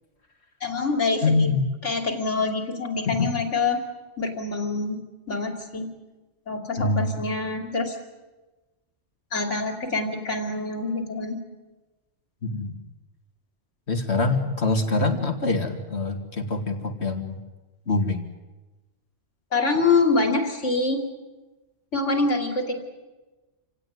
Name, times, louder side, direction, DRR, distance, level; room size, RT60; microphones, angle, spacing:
voice 1, 0.6-1.5 1.8-3.8 4.2-5.0 5.3-5.9 6.5-8.0 9.3-11.4 19.5-21.0 21.9-22.7, left 3 dB, 80° left, 4 dB, 3.3 m, -25 dB
voice 2, 1.2-1.6 3.1-3.4 6.8-7.2 12.4-12.8 13.9-17.4 17.9-18.3, left 3 dB, 65° left, 6 dB, 2.4 m, -24 dB
28.0 x 17.5 x 9.4 m, 1.2 s
omnidirectional pair, 1.2 m